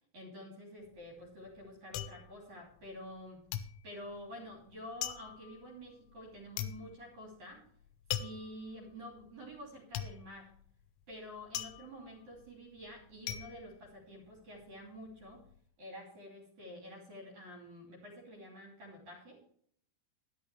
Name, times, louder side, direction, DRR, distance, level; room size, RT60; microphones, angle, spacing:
voice 1, 0.1-3.5 3.8-7.7 8.2-10.5 11.1-15.4 15.8-19.4, equal, 40° right, 0 dB, 3.7 m, -49 dB
sound 1, 0.8-3.2 3.5-14.6 15.0-15.6, left 11 dB, 80° left, 3.2 m, -42 dB
12.0 x 11.0 x 3.3 m, 0.63 s
omnidirectional pair, 5.9 m